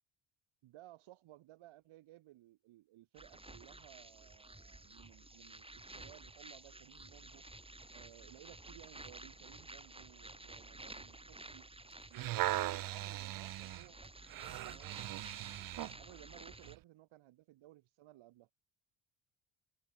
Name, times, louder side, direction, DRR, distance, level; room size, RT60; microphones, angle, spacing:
voice 1, 0.6-7.5 7.9-11.7 12.1-15.6 16.0-18.5, right 16 dB, 80° right, 6.9 m, -59 dB
sound 1, 3.1-16.8, right 2 dB, 10° right, 5.6 m, -53 dB
sound 2, 11.9-16.0 16.6-16.8, right 16 dB, 50° right, 0.5 m, -39 dB
cardioid pair, 90°, 48 cm